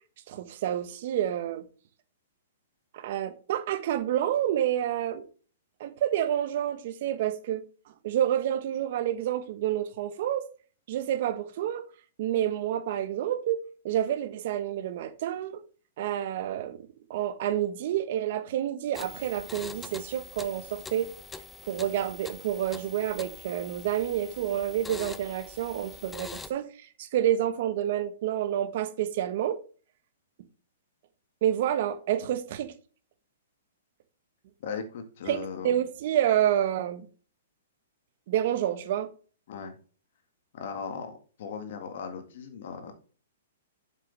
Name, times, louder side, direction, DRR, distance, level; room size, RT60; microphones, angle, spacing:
voice 1, 0.3-1.6 2.9-5.2 5.8-7.6 8.0-10.4 10.9-11.8 12.2-15.6 16.0-16.8 17.1-21.1 21.6-29.6 31.4-32.7 35.3-37.1 38.3-39.1, right 11 dB, 55° right, 1.1 m, -29 dB
sound 1, 18.9-26.5, left 4 dB, 10° left, 0.6 m, -44 dB
voice 2, 34.6-35.7 39.5-39.8 40.5-42.9, left 6 dB, 60° left, 1.8 m, -38 dB
7.8 x 6.5 x 3.4 m
hypercardioid pair, 140°, 0 cm